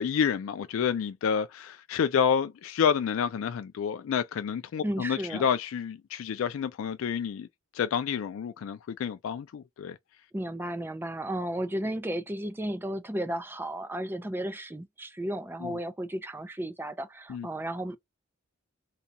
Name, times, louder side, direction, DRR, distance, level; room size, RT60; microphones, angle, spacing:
voice 1, 0.0-7.5 7.7-10.0 15.6-15.7 17.3-17.5, left 7 dB, 70° left, 0.3 m, -29 dB
voice 2, 4.8-5.5 10.3-18.0, right 1 dB, 10° right, 0.4 m, -34 dB
3.8 x 2.3 x 2.8 m
head